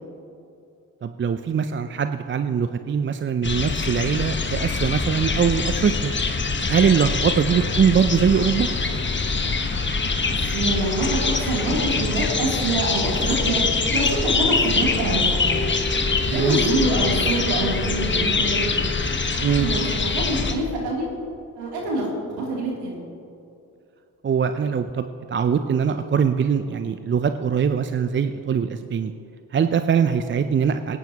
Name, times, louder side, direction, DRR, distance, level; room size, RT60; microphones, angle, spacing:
voice 1, 1.0-6.1 6.7-8.7 16.3-16.6 19.4-19.7 24.2-29.1 29.5-31.0, right 7 dB, 30° right, 9 dB, 0.5 m, -22 dB
sound 1, 3.4-20.5, left 4 dB, 30° left, 1.3 m, -24 dB
voice 2, 10.3-13.6 13.9-15.7 16.3-18.8 19.4-19.8 20.1-21.1 21.6-23.0, right 1 dB, 75° right, -4 dB, 3.2 m, -25 dB
sound 2, 15.5-19.3, equal, 85° left, 1.0 m, -38 dB
18.5 x 9.3 x 3.0 m, 2.6 s
hypercardioid pair, 50°, 39 cm